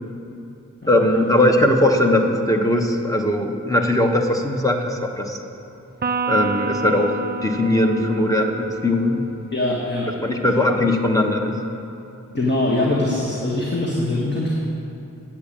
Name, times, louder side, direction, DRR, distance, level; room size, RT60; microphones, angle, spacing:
voice 1, 0.9-5.4 6.3-9.2 10.2-11.6, left 1 dB, 10° left, 2 dB, 1.1 m, -19 dB
Electric guitar, 6.0-9.5, right 4 dB, 30° right, 0.4 m, -29 dB
voice 2, 9.5-10.1 12.3-14.6, left 2 dB, 35° left, -4 dB, 1.5 m, -22 dB
8.5 x 7.4 x 8.7 m, 2.7 s
wide cardioid pair, 50°, 32 cm